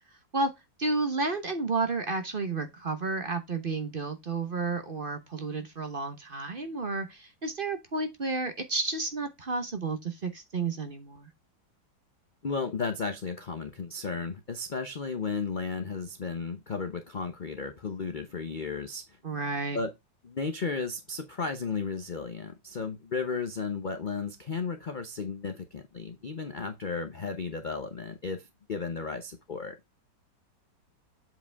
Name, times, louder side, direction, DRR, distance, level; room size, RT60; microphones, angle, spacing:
voice 1, 0.8-11.3 19.2-19.8, right 3 dB, 35° right, 1.1 m, -31 dB
voice 2, 12.4-19.2 19.7-19.9 20.2-29.8, left 4 dB, 50° left, 0.6 m, -34 dB
7.9 x 4.9 x 3.4 m
omnidirectional pair, 1.9 m